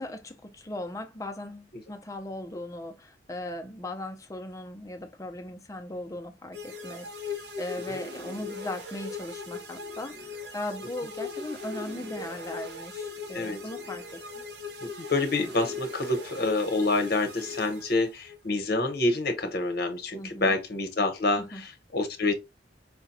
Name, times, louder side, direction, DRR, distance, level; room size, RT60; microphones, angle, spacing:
voice 1, 0.0-14.4 20.1-20.6 21.4-21.6, left 1 dB, 20° left, 0.5 m, -38 dB
sound 1, 6.5-18.4, left 3 dB, 70° right, 0.8 m, -39 dB
voice 2, 14.8-22.3, left 2 dB, 55° left, 0.9 m, -27 dB
4.8 x 2.2 x 2.6 m
head